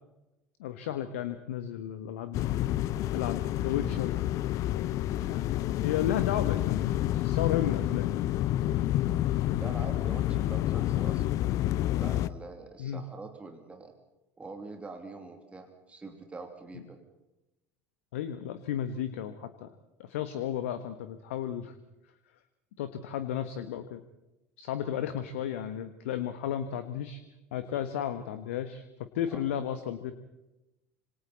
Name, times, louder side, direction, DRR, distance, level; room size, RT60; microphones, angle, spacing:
voice 1, 0.6-2.5 3.1-4.2 5.2-5.5 5.8-8.1 12.8-13.1 18.1-19.7 20.0-21.7 22.8-24.0 24.6-27.2 27.5-28.8 29.1-30.1, left 10 dB, 60° left, 11 dB, 1.3 m, -33 dB
sound 1, 2.3-12.3, left 13 dB, 45° left, 0.8 m, -29 dB
voice 2, 9.6-11.3 12.0-13.9 14.4-17.0 27.7-27.8 29.3-29.4, right 3 dB, 15° right, 4 dB, 3.0 m, -44 dB
26.5 x 26.5 x 4.2 m, 0.97 s
figure-of-eight pair, 70°, 8 cm